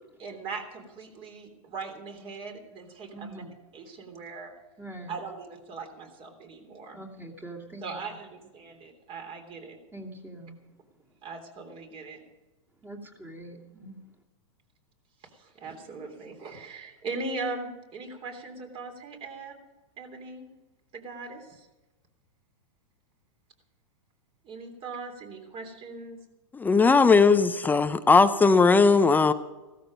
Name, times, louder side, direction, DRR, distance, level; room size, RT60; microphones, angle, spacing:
voice 1, 0.2-3.4 3.7-4.5 5.1-7.0 7.8-9.8 11.2-12.2 15.3-19.6 20.0-20.5 20.9-21.7 24.4-26.2, right 3 dB, 30° right, 4 dB, 3.3 m, -39 dB
voice 2, 3.1-3.5 4.8-5.2 6.9-7.9 9.9-10.6 12.8-14.0, right 1 dB, 10° right, 2 dB, 2.7 m, -43 dB
voice 3, 26.5-29.3, left 4 dB, 10° left, 11 dB, 0.5 m, -19 dB
16.0 x 13.5 x 5.2 m, 1.1 s
hypercardioid pair, 135°, 18 cm